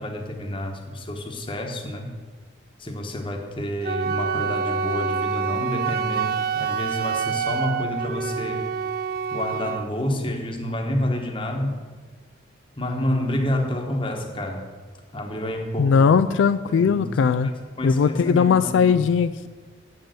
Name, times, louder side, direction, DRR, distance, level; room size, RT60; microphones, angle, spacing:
voice 1, 0.0-2.1 2.8-8.7 9.3-11.8 12.8-14.6 15.1-16.1 16.6-18.9, left 1 dB, 25° left, 3 dB, 1.1 m, -29 dB
Wind instrument woodwind instrument, 3.8-9.9, right 6 dB, 50° right, 0.3 m, -27 dB
voice 2, 15.8-17.5 17.8-19.5, left 6 dB, 75° left, 11 dB, 0.3 m, -19 dB
8.5 x 6.6 x 7.7 m, 1.4 s
head